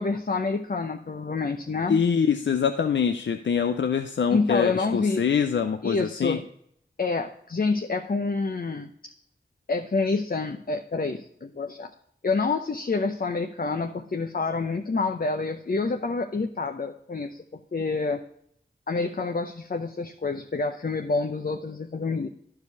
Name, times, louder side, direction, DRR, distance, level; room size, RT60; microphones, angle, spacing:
voice 1, 0.0-2.0 4.3-5.2 5.8-6.4 7.0-8.9 9.7-11.9 12.2-17.4 17.7-18.2 18.9-22.3, left 3 dB, 50° left, 5 dB, 0.8 m, -27 dB
voice 2, 1.9-6.4, left 7 dB, 85° left, 8 dB, 0.5 m, -24 dB
11.5 x 4.8 x 4.6 m, 0.70 s
cardioid pair, 40°, 19 cm